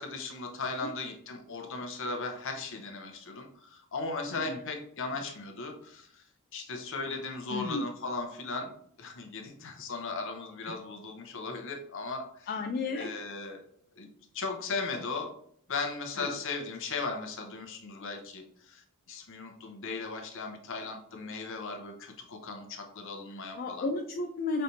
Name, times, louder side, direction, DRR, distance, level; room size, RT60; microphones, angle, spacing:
voice 1, 0.0-6.2 6.5-12.5 12.9-13.7 14.0-14.1 14.3-15.3 15.7-18.8 19.1-23.9, left 3 dB, 60° left, 5 dB, 0.8 m, -37 dB
voice 2, 7.5-7.8 10.7-10.8 12.5-13.1 16.2-16.4 23.3-24.6, left 3 dB, 45° left, 3 dB, 0.3 m, -33 dB
5.5 x 3.3 x 2.7 m, 0.66 s
head